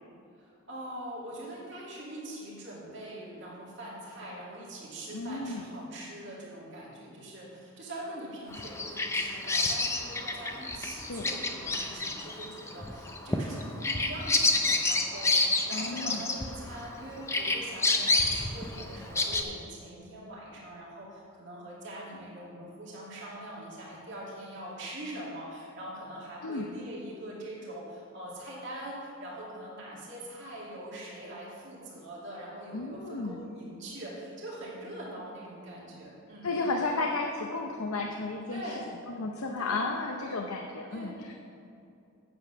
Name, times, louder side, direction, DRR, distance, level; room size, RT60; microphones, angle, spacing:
voice 1, 0.4-36.5 38.5-38.9 39.6-39.9 40.9-41.3, right 1 dB, 55° right, -5 dB, 2.4 m, -43 dB
voice 2, 5.1-5.6 11.1-11.3 15.7-16.2 26.4-26.7 32.7-33.4 36.4-38.6 39.1-41.3, left 3 dB, 75° left, 1 dB, 0.7 m, -33 dB
Bird vocalization bird call bird song, 8.5-16.9 17.3-19.4, left 2 dB, 10° left, 0.5 m, -28 dB
8.7 x 8.0 x 5.7 m, 2.6 s
head